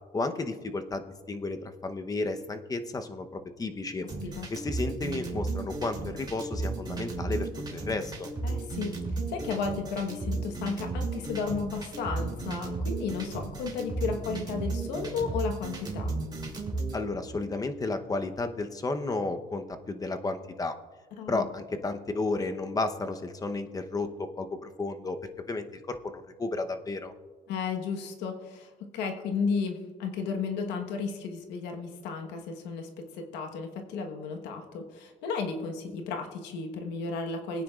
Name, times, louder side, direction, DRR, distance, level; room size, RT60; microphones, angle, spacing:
voice 1, 0.1-4.1 4.5-8.3 16.9-20.7 21.3-25.2 25.5-27.1, left 3 dB, 20° left, 7 dB, 0.8 m, -33 dB
sound 1, 4.1-17.0, right 3 dB, 25° right, 2.7 m, -34 dB
voice 2, 8.4-8.9 9.3-16.1 21.2-21.4 27.5-37.6, left 5 dB, 90° left, 3 dB, 1.3 m, -33 dB
21.5 x 9.5 x 2.4 m, 1.3 s
cardioid pair, 110°, 17 cm